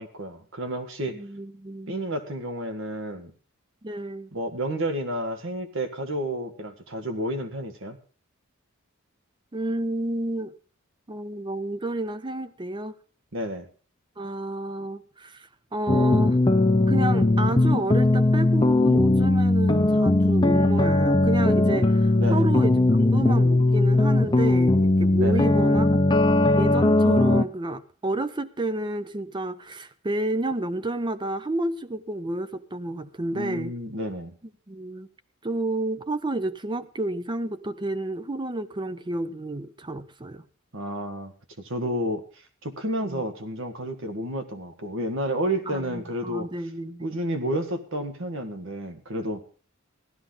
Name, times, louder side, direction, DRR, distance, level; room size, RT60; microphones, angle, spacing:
voice 1, 0.0-1.2 1.9-3.3 4.3-8.0 13.3-13.7 22.2-22.5 25.2-25.5 33.3-34.4 40.7-42.2 42.6-46.5 47.0-49.4, right 1 dB, 70° right, 7 dB, 1.7 m, -31 dB
voice 2, 1.1-2.0 3.8-4.3 9.5-10.5 11.1-12.9 14.2-16.4 16.9-26.0 26.6-33.7 34.7-35.1 35.4-40.4 43.0-43.2 45.7-47.2, right 2 dB, 20° right, 12 dB, 0.6 m, -30 dB
sound 1, 15.9-27.4, left 2 dB, 20° left, 0.6 m, -19 dB
15.5 x 12.0 x 3.9 m, 0.38 s
head